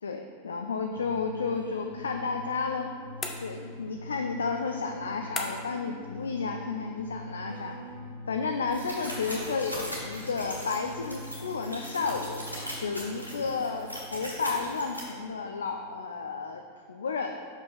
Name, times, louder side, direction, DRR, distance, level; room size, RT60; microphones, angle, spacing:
voice 1, 0.0-2.9 3.4-7.8 8.3-12.4 12.8-16.6 16.9-17.4, left 4 dB, 70° left, 4 dB, 0.4 m, -32 dB
sound 1, 0.9-16.0, equal, 85° right, 1.3 m, -44 dB
sound 2, 3.2-3.9 5.4-5.9, left 3 dB, 20° left, 0.8 m, -37 dB
sound 3, 8.7-15.0, equal, 90° left, 1.9 m, -40 dB
6.0 x 5.3 x 5.3 m, 2.2 s
figure-of-eight pair, 90°, 0 cm